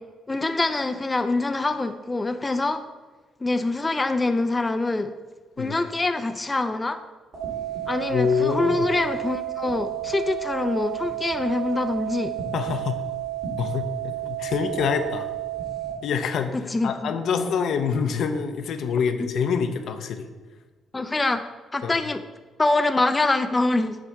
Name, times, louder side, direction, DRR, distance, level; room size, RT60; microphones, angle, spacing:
voice 1, 0.3-2.8 3.4-5.1 5.6-7.0 7.9-12.3 16.7-17.1 20.9-21.4 21.7-22.2 22.6-24.0, left 2 dB, 20° left, 9 dB, 0.4 m, -24 dB
sound 1, 7.3-15.9, right 13 dB, 60° right, 2.2 m, -31 dB
voice 2, 8.1-8.9 12.5-13.0 13.6-15.3 16.0-20.3 21.8-21.9, left 6 dB, 70° left, 7 dB, 0.6 m, -26 dB
7.3 x 3.3 x 5.5 m, 1.3 s
cardioid pair, 90°, 0 cm